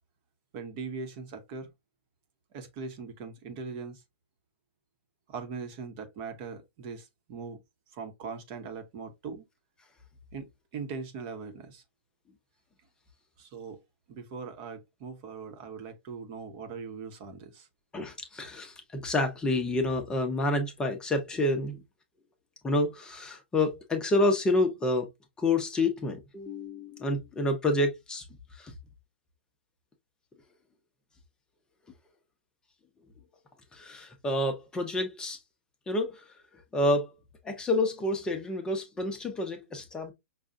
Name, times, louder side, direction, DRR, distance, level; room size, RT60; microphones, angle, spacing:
voice 1, 0.5-1.7 2.5-4.0 5.3-7.6 7.9-9.4 10.3-11.8 13.4-13.8 14.1-17.7, right 5 dB, 40° right, 1.0 m, -40 dB
voice 2, 17.9-21.8 22.6-25.1 25.4-28.2 28.6-28.7 33.7-35.4 35.9-36.2 36.7-37.1 37.4-40.1, left 2 dB, 10° left, 0.7 m, -28 dB
5.4 x 2.3 x 2.5 m
hypercardioid pair, 140°, 7 cm